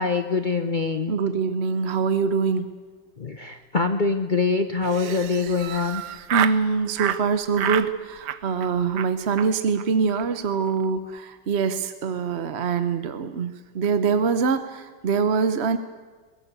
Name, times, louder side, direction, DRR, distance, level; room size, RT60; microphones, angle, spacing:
voice 1, 0.0-1.1 3.2-6.0, left 4 dB, 40° left, 8 dB, 0.6 m, -24 dB
voice 2, 1.1-2.7 6.3-15.8, right 5 dB, 45° right, 10 dB, 0.9 m, -24 dB
Laughter, 4.8-6.6 7.0-7.2 7.5-7.9 8.2-8.7 8.9-9.1 9.4-9.5 9.7-9.8 10.1-10.2 10.5-10.8, right 10 dB, 65° right, 1.4 m, -29 dB
21.5 x 18.0 x 8.2 m, 1.4 s
omnidirectional pair, 2.1 m